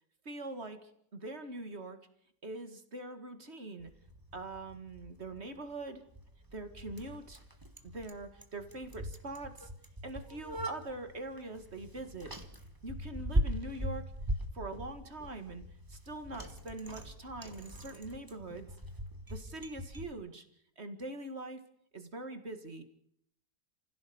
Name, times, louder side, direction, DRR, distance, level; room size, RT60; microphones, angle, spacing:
voice 1, 0.3-2.0 2.4-3.9 4.3-6.0 6.5-7.4 7.8-9.7 10.0-12.3 12.8-14.1 14.5-15.6 15.9-18.7 19.3-20.4 20.8-21.6 21.9-22.8, right 2 dB, 35° right, 8 dB, 2.1 m, -43 dB
Bicycle, 3.8-20.1, equal, 10° right, 1.5 m, -40 dB
29.5 x 16.0 x 7.1 m, 0.72 s
omnidirectional pair, 1.9 m